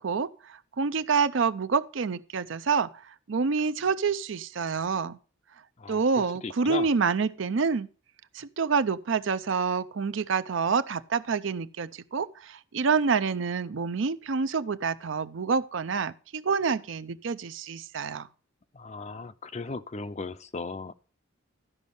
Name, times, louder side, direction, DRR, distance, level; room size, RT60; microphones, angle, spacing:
voice 1, 0.0-2.9 3.3-5.2 5.9-7.9 8.3-18.3, right 5 dB, 70° right, 0.5 m, -27 dB
voice 2, 6.4-6.9 18.7-20.9, left 3 dB, 35° left, 0.5 m, -36 dB
13.0 x 5.3 x 5.3 m
head